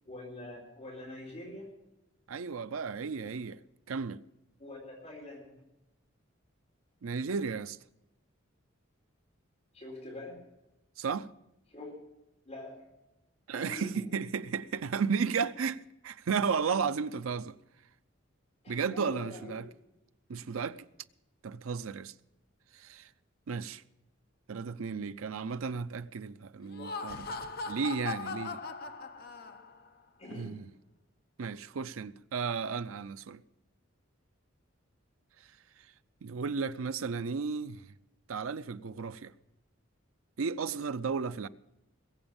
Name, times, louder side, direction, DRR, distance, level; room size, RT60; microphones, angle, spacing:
voice 1, 0.1-1.7 4.6-5.5 9.7-10.4 11.7-12.0 12.5-12.8 13.5-13.9 18.6-19.6 30.2-30.6, left 2 dB, 30° left, 4.2 m, -44 dB
voice 2, 2.3-3.6 3.9-4.2 7.0-7.8 11.0-11.3 13.5-17.5 18.7-19.7 20.3-20.9 21.4-22.1 22.7-23.1 23.5-23.8 24.5-27.4 27.7-28.6 30.3-30.7 31.4-33.4 36.2-37.9 38.3-39.3 40.4-41.5, right 5 dB, 90° right, 0.5 m, -34 dB
Laughter, 26.6-29.9, left 4 dB, 50° left, 0.8 m, -39 dB
21.0 x 8.0 x 7.1 m
head